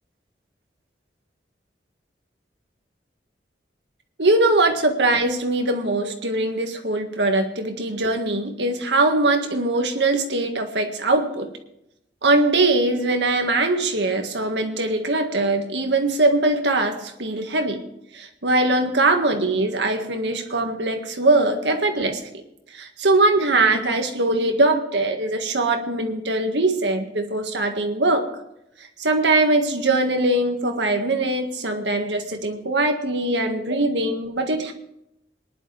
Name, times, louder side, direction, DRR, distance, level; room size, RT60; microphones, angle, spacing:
voice 1, 4.2-11.5 12.2-17.8 18.1-22.2 22.7-28.3 29.0-34.7, right 2 dB, 85° right, 5 dB, 1.8 m, -21 dB
20.5 x 11.0 x 3.4 m, 0.82 s
head